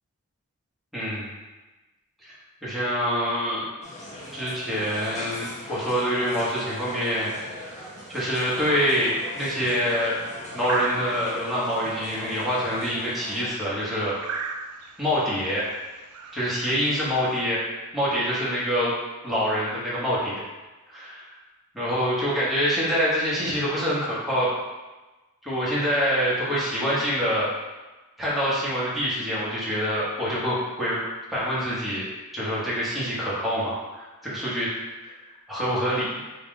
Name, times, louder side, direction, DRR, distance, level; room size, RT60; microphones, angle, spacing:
voice 1, 0.9-1.3 2.2-2.3 2.6-3.7 4.3-7.3 8.1-10.2 10.5-14.1 15.0-15.6 16.3-17.6 17.9-18.9 19.2-20.4 20.9-21.3 21.7-24.5 25.4-27.5 28.2-31.0 31.3-32.0 32.3-34.7 35.0-36.1, equal, ahead, -9 dB, 1.0 m, -26 dB
sound 1, 3.8-13.5, left 1 dB, 30° left, 0.6 m, -40 dB
sound 2, 7.6-17.4, right 5 dB, 75° right, 0.3 m, -40 dB
3.6 x 2.4 x 3.7 m, 1.2 s
head